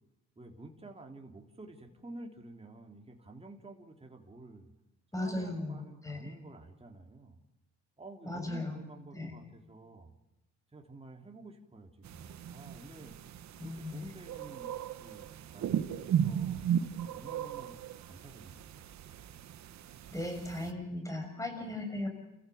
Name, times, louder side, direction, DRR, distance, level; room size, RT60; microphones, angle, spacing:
voice 1, 0.3-4.7 5.1-7.4 8.0-10.1 10.7-13.1 13.6-18.8, right 2 dB, 20° right, 2 dB, 3.4 m, -51 dB
voice 2, 5.1-6.4 8.3-8.8 9.1-9.3 13.6-14.0 20.1-22.1, left 1 dB, 10° left, 4 dB, 6.4 m, -37 dB
sound 1, 12.0-20.7, right 9 dB, 65° right, 1.2 m, -36 dB
30.0 x 15.0 x 7.2 m, 0.96 s
cardioid pair, 90°, 30 cm